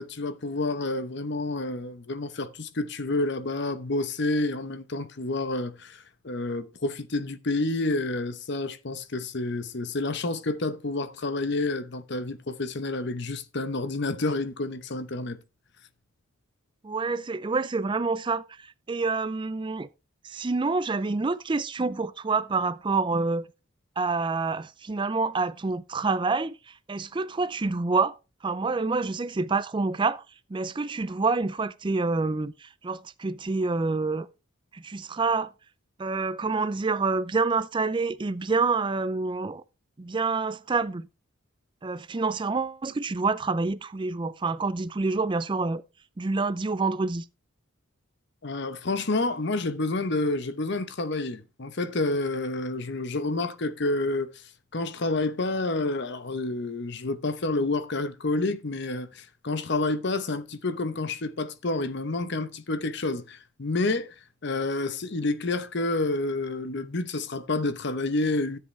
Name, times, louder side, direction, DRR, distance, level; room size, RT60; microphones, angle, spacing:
voice 1, 0.0-15.4 48.4-54.4 54.7-64.1 64.4-68.6, left 2 dB, 55° left, 0.9 m, -29 dB
voice 2, 16.8-19.9 20.2-23.5 24.0-28.2 28.4-30.2 30.5-34.3 34.7-35.5 36.0-39.6 40.0-41.1 41.8-45.8 46.2-47.2, right 4 dB, 25° right, 0.4 m, -27 dB
13.0 x 7.7 x 3.3 m
head